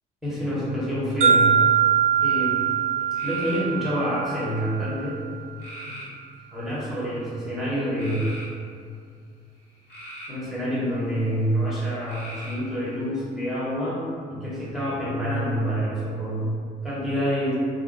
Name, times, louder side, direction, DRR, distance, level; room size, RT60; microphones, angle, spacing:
voice 1, 0.2-1.7 2.2-2.6 3.2-5.2 5.8-6.0 6.5-8.4 10.3-14.0 14.3-17.6, equal, ahead, -9 dB, 1.1 m, -27 dB
sound 1, 1.2-5.2, right 7 dB, 40° right, 0.4 m, -22 dB
sound 2, 2.2-2.6 3.2-3.7 4.4-4.9 5.6-6.1 6.8-7.2 7.9-8.5 9.6-10.4 12.1-12.7, equal, 75° left, 1.1 m, -40 dB
2.4 x 2.2 x 3.9 m, 2.3 s
cardioid pair, 110°, 17 cm